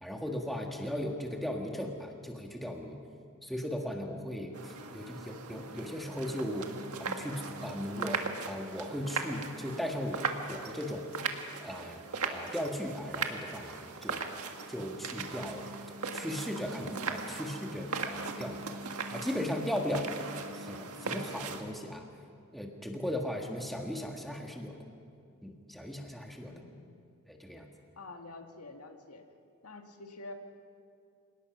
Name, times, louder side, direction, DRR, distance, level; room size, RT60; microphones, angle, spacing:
voice 1, 0.0-3.0 3.4-6.7 7.0-11.1 11.6-14.2 14.7-15.7 16.1-18.7 19.1-20.1 20.5-22.1 22.5-24.8 25.4-26.6 27.3-27.7, equal, ahead, 1 dB, 1.6 m, -37 dB
sound 1, 4.5-21.6, right 4 dB, 90° right, 1.7 m, -39 dB
voice 2, 26.5-27.0 28.0-29.2 29.6-30.3, left 2 dB, 90° left, 4 dB, 2.0 m, -47 dB
27.0 x 18.5 x 6.0 m, 2.4 s
head